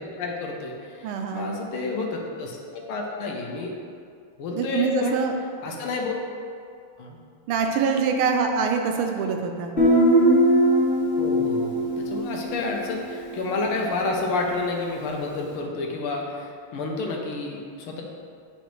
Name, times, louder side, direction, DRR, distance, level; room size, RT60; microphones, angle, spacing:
voice 1, 0.0-3.7 4.4-5.2 5.6-6.1 7.0-7.2 11.2-18.0, left 3 dB, 80° left, 0 dB, 1.6 m, -30 dB
voice 2, 1.0-1.6 4.5-5.3 7.5-9.7, right 5 dB, 85° right, 4 dB, 1.6 m, -24 dB
Guitar, 9.8-13.4, right 1 dB, 35° left, 1.8 m, -21 dB
10.0 x 4.0 x 3.1 m, 2.3 s
omnidirectional pair, 2.4 m